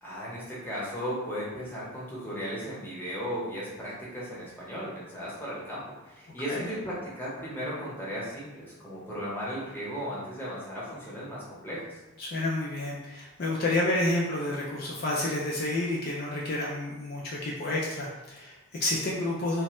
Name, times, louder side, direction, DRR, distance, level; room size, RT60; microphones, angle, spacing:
voice 1, 0.0-12.0, equal, 10° left, -7 dB, 0.7 m, -36 dB
voice 2, 12.2-19.6, left 2 dB, 45° left, -4 dB, 0.3 m, -30 dB
3.1 x 2.1 x 3.0 m, 1.1 s
head